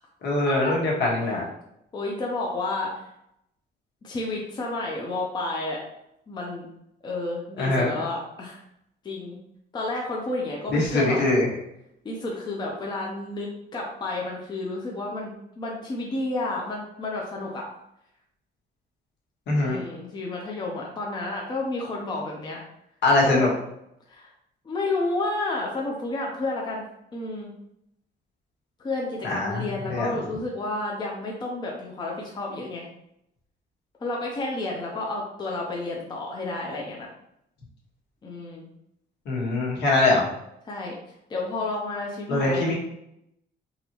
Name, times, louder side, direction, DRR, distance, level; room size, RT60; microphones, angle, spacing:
voice 1, 0.2-1.4 7.6-8.0 10.7-11.5 19.5-19.8 23.0-23.5 29.2-29.6 29.9-30.1 39.2-40.3 42.3-42.7, left 2 dB, 70° left, -3 dB, 1.4 m, -22 dB
voice 2, 1.9-3.1 4.0-5.8 6.3-6.7 7.0-8.6 9.0-9.4 9.7-11.2 12.0-17.7 19.5-22.6 23.2-23.5 24.1-24.3 24.6-26.8 27.1-27.5 28.8-32.9 34.0-37.1 38.2-38.7 40.7-40.9 41.3-42.7, left 2 dB, 25° left, -2 dB, 0.6 m, -31 dB
3.9 x 2.9 x 2.9 m, 0.79 s
cardioid pair, 155°, 18 cm